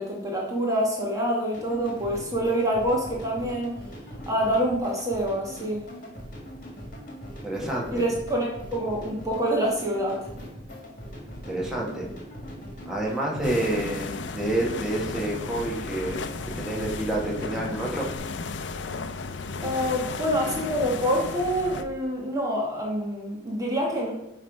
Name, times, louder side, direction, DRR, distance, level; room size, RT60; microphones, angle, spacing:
voice 1, 0.0-3.7 4.3-5.8 7.9-10.2 19.6-24.1, equal, 20° right, -3 dB, 1.4 m, -26 dB
sound 1, 1.5-18.2, equal, 50° left, 1.9 m, -41 dB
voice 2, 7.4-8.0 11.4-12.1 12.8-16.2 16.6-18.1, right 1 dB, 5° right, -3 dB, 1.5 m, -28 dB
sound 2, 13.4-21.8, left 4 dB, 80° left, 0.5 m, -35 dB
8.4 x 3.2 x 5.2 m, 0.93 s
head